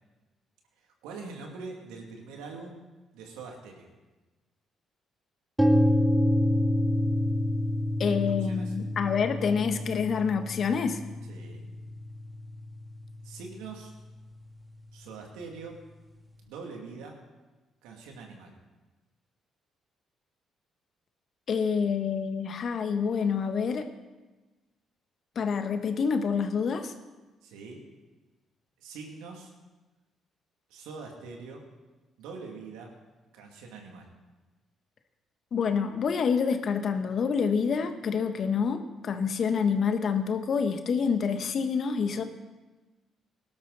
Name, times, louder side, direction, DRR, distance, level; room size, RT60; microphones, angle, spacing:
voice 1, 0.8-2.8 3.1-3.9 8.1-8.7 11.3-11.6 13.2-13.9 14.9-15.8 16.4-17.2 17.8-18.5 27.4-27.8 28.8-29.5 30.7-31.7 32.2-32.9 33.3-34.1, right 4 dB, 80° right, 1 dB, 2.5 m, -43 dB
sound 1, 5.6-13.5, left 1 dB, 10° right, 2.1 m, -28 dB
voice 2, 8.0-11.0 21.5-23.9 25.3-26.9 35.5-42.2, left 6 dB, 55° left, 8 dB, 1.4 m, -27 dB
18.5 x 12.0 x 4.1 m, 1.2 s
hypercardioid pair, 50°, 0 cm